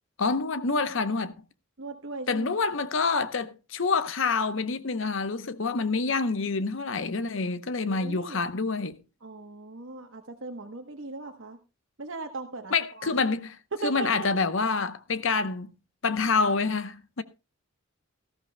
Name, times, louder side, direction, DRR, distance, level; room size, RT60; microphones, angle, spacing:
voice 1, 0.2-1.3 2.3-8.9 12.7-13.6 13.8-15.7 16.0-17.2, left 4 dB, 65° left, 0.8 m, -27 dB
voice 2, 1.8-2.5 7.8-8.4 9.2-11.6 12.0-13.1 13.7-14.3, right 3 dB, 65° right, 1.0 m, -38 dB
18.0 x 13.5 x 2.2 m
head